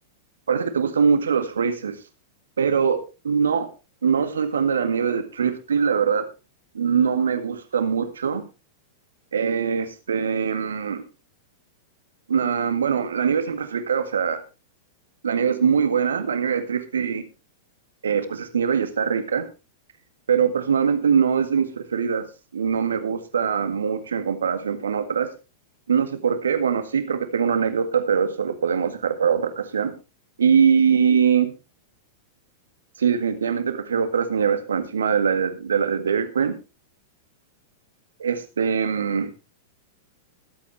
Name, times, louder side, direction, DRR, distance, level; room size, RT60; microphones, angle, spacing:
voice 1, 0.5-2.0 2.6-3.0 3.2-3.7 4.0-6.3 6.8-8.4 9.3-11.0 12.3-14.4 15.2-17.2 18.0-19.5 20.3-22.3 22.5-25.3 25.9-29.9 30.4-31.5 33.0-36.6 38.2-39.3, right 6 dB, 70° right, 9 dB, 1.9 m, -22 dB
21.0 x 8.4 x 3.3 m, 0.30 s
figure-of-eight pair, 95°, 0 cm